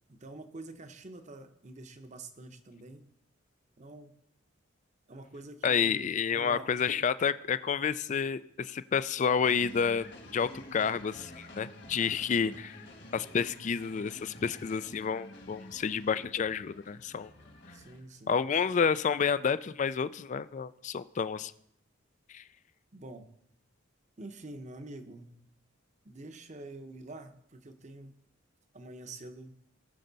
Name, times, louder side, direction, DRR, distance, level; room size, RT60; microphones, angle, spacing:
voice 1, 0.1-3.0 3.8-4.1 5.1-6.8 17.7-18.4 22.9-23.3 24.2-25.3 26.0-28.1 28.7-29.6, right 2 dB, 35° right, 8 dB, 0.8 m, -46 dB
voice 2, 5.6-10.1 10.3-12.8 13.1-17.3 18.3-21.5 22.3-22.4, left 6 dB, 35° left, 15 dB, 0.3 m, -30 dB
sound 1, 9.4-18.0, left 1 dB, 55° left, 1.8 m, -49 dB
18.5 x 6.5 x 4.0 m, 0.74 s
head